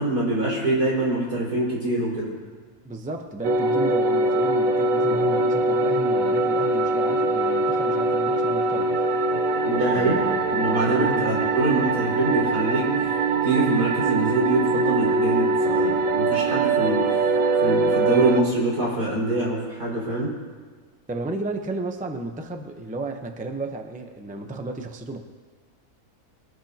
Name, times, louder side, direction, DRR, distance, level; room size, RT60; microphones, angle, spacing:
voice 1, 0.0-2.3 9.6-10.1 10.5-12.9 13.4-17.3 17.6-20.3, right 2 dB, 85° right, -5 dB, 5.6 m, -24 dB
sound 1, 2.2-2.7 5.0-6.4, left 3 dB, 15° left, 3.1 m, -41 dB
voice 2, 2.8-8.9 9.9-11.3 21.1-25.2, right 2 dB, 5° right, 4 dB, 0.6 m, -33 dB
sound 2, 3.4-18.4, right 2 dB, 65° right, 1.1 m, -22 dB
22.0 x 19.0 x 2.9 m, 1.5 s
omnidirectional pair, 1.6 m